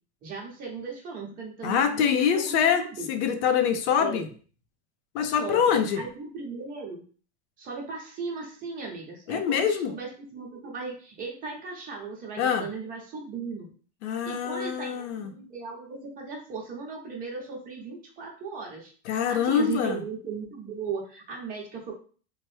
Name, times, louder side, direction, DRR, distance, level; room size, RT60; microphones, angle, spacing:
voice 1, 0.2-3.1 4.0-4.2 5.4-5.6 6.0-7.0 7.6-9.6 9.9-13.7 14.2-21.9, right 4 dB, 25° right, -1 dB, 0.8 m, -37 dB
voice 2, 1.6-4.3 5.1-6.0 9.3-9.9 12.4-12.7 14.0-15.3 19.1-20.0, left 7 dB, 70° left, 8 dB, 0.6 m, -25 dB
3.1 x 2.1 x 3.1 m, 0.41 s
supercardioid pair, 160°, 35 cm